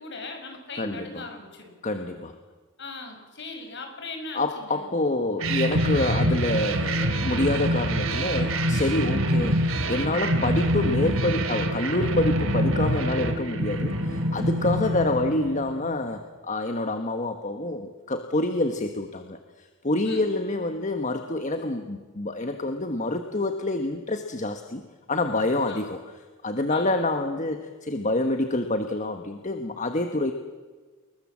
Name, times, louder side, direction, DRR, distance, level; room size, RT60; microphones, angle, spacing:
voice 1, 0.0-1.7 2.8-4.8 20.0-20.3 25.7-25.9 26.7-27.5, left 2 dB, 55° left, 4 dB, 6.4 m, -39 dB
voice 2, 0.8-1.2 1.8-2.4 4.3-24.8 25.1-26.0 26.4-30.3, left 2 dB, 35° left, 6 dB, 1.4 m, -27 dB
sound 1, 5.4-15.9, right 1 dB, 65° right, 2.8 m, -25 dB
29.5 x 21.0 x 7.6 m, 1.4 s
head